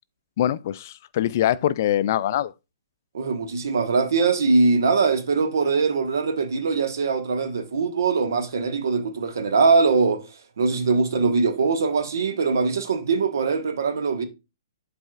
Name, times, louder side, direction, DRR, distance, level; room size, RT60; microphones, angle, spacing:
voice 1, 0.4-2.5 10.7-10.8, left 12 dB, 45° left, 0.3 m, -23 dB
voice 2, 3.1-10.2 10.6-14.2, right 4 dB, 65° right, 1.3 m, -22 dB
11.5 x 4.1 x 2.4 m
figure-of-eight pair, 120°, 2 cm